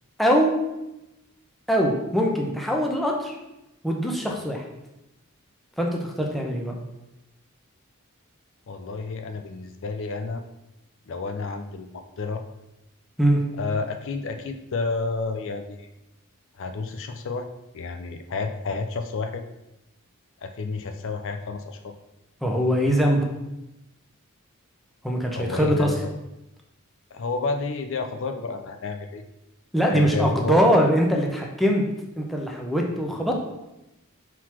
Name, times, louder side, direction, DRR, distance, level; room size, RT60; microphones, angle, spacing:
voice 1, 0.2-0.5 1.7-3.4 3.8-4.6 5.8-6.8 13.2-13.4 22.4-23.3 25.0-25.9 29.7-31.8 32.2-33.4, equal, ahead, -1 dB, 0.9 m, -22 dB
voice 2, 8.7-10.4 11.1-12.4 13.6-15.9 16.6-17.5 17.7-19.4 20.4-21.9 25.3-26.0 27.1-29.2 29.9-30.6, left 4 dB, 60° left, 7 dB, 0.5 m, -30 dB
4.7 x 3.9 x 5.7 m, 0.93 s
head